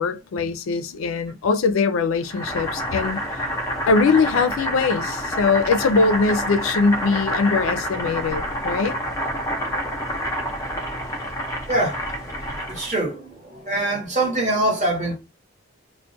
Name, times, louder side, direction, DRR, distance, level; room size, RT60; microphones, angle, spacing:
voice 1, 0.0-3.5 3.9-8.9, left 4 dB, 80° left, 0.4 m, -21 dB
Boiling, 2.3-12.9, equal, 15° left, 0.5 m, -28 dB
voice 2, 11.7-12.1 12.7-15.2, right 1 dB, 35° right, 0.9 m, -24 dB
2.3 x 2.1 x 2.5 m
head